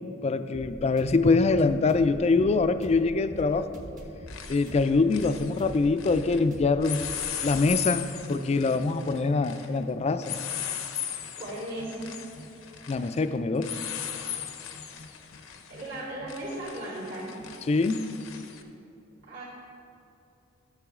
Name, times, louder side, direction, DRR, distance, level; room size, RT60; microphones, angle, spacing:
voice 1, 0.2-3.7 4.5-7.0 7.4-10.4 12.9-13.7 17.7-18.0, left 3 dB, 30° left, 11 dB, 0.3 m, -24 dB
sound 1, 0.5-7.8, equal, 40° right, 1.1 m, -44 dB
sound 2, 1.6-1.7 3.4-3.7 4.0-6.4 6.8-18.6, left 9 dB, 85° left, 0.7 m, -38 dB
voice 2, 11.4-12.1 15.7-17.3 19.3-19.4, right 1 dB, 70° right, -10 dB, 2.4 m, -36 dB
13.0 x 6.8 x 3.7 m, 2.7 s
head